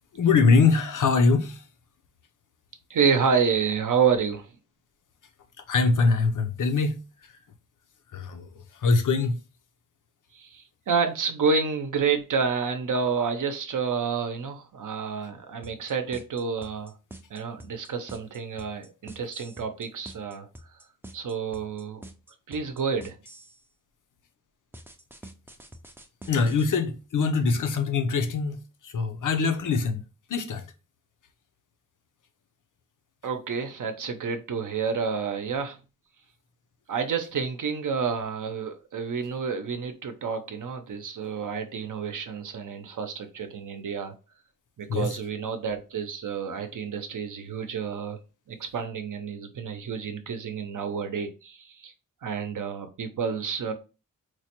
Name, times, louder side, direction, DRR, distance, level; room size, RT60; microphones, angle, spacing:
voice 1, 0.1-1.7 5.7-7.0 8.1-9.4 26.3-30.0 30.3-30.7 44.9-45.2, left 4 dB, 65° left, 0.6 m, -23 dB
voice 2, 2.9-4.5 10.3-16.9 17.3-20.5 21.1-22.0 22.5-23.2 33.2-35.8 36.9-44.1 44.8-48.2 48.5-51.9 52.2-53.7, right 6 dB, 65° right, 0.7 m, -29 dB
sound 1, 15.6-23.6 24.7-26.7, right 1 dB, 5° right, 0.4 m, -46 dB
4.5 x 2.1 x 2.9 m
wide cardioid pair, 90°, 33 cm